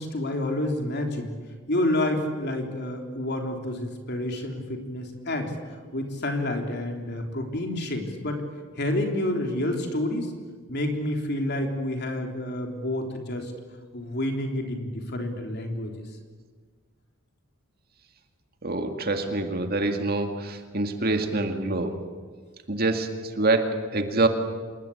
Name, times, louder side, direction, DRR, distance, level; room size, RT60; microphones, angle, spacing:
voice 1, 0.0-1.3 1.7-5.5 5.9-8.4 8.8-10.4 10.7-13.5 13.9-15.9, left 1 dB, 50° left, 3 dB, 3.6 m, -29 dB
voice 2, 18.6-22.0 22.7-24.3, right 2 dB, 45° right, 6 dB, 2.1 m, -26 dB
27.5 x 20.5 x 8.6 m, 1.5 s
head